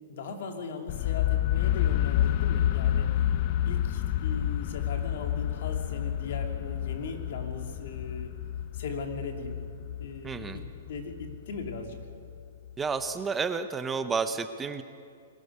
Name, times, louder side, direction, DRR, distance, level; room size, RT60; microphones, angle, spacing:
voice 1, 0.1-3.1 3.6-8.3 8.7-9.6 10.0-10.6 10.9-12.0, left 4 dB, 65° left, 3 dB, 2.8 m, -38 dB
sound 1, 0.9-12.7, left 12 dB, 45° left, 0.6 m, -29 dB
voice 2, 10.2-10.6 12.8-14.8, right 5 dB, 15° right, 10 dB, 0.8 m, -31 dB
22.0 x 14.0 x 9.6 m, 2.4 s
hypercardioid pair, 140°, 0 cm